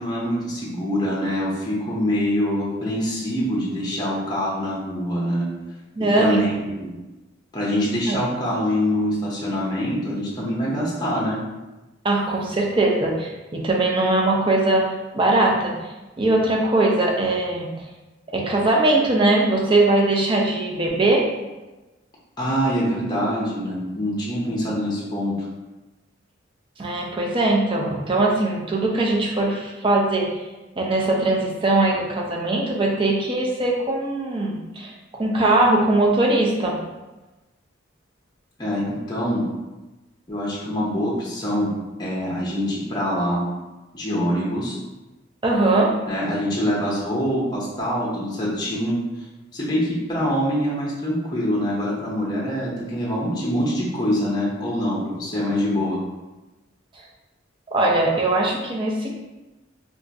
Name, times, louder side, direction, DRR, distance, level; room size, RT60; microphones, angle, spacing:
voice 1, 0.0-5.5 6.2-6.9 7.5-11.4 22.4-25.5 38.6-39.5 40.3-41.7 42.0-43.5 43.9-44.8 46.1-49.0 49.5-56.0, equal, 20° left, -5 dB, 0.6 m, -24 dB
voice 2, 6.0-6.4 8.1-8.2 12.0-15.8 16.2-17.9 18.3-21.2 26.8-30.4 30.8-36.8 45.4-45.9 57.7-59.1, right 2 dB, 25° right, -1 dB, 0.5 m, -21 dB
2.4 x 2.4 x 4.0 m, 1.1 s
head